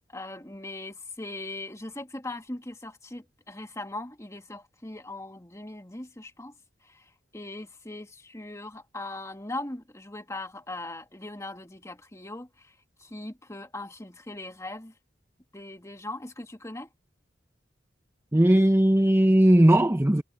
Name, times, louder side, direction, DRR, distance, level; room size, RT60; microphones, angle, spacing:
voice 1, 0.1-6.5 6.8-12.7 13.0-14.9 15.5-16.9, left 2 dB, 15° left, 1.8 m, -40 dB
voice 2, 18.3-20.2, right 1 dB, 15° right, 0.7 m, -18 dB
head